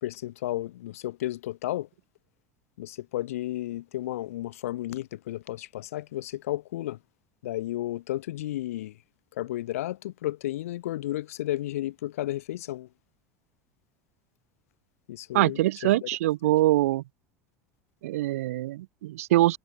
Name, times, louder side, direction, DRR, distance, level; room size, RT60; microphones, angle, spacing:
voice 1, 0.0-1.9 2.8-7.0 7.4-9.0 9.3-12.9 15.1-16.1, left 15 dB, 90° left, 2.3 m, -33 dB
voice 2, 15.3-17.0 18.0-19.6, right 16 dB, 85° right, 1.2 m, -24 dB
supercardioid pair, 100°, 8 cm